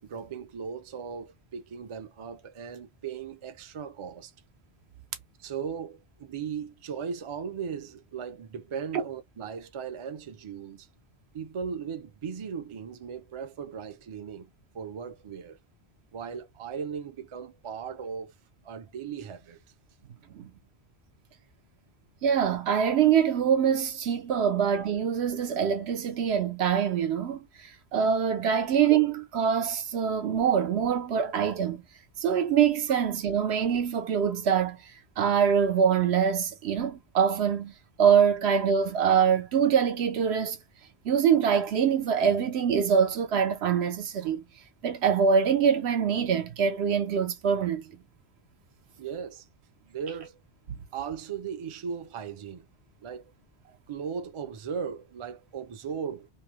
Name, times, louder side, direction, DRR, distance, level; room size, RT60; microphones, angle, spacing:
voice 1, 0.0-4.3 5.4-10.9 11.3-14.5 14.7-15.6 16.1-18.3 18.6-19.6 49.0-49.5 49.8-50.4 50.9-52.7 53.0-53.2 53.9-56.3, right 7 dB, 45° right, 0.4 m, -37 dB
voice 2, 22.2-27.4 27.9-31.8 32.2-34.8 35.2-37.7 38.0-40.6 41.0-44.4 44.8-47.8, right 7 dB, 85° right, 1.0 m, -24 dB
2.9 x 2.1 x 2.9 m
omnidirectional pair, 1.1 m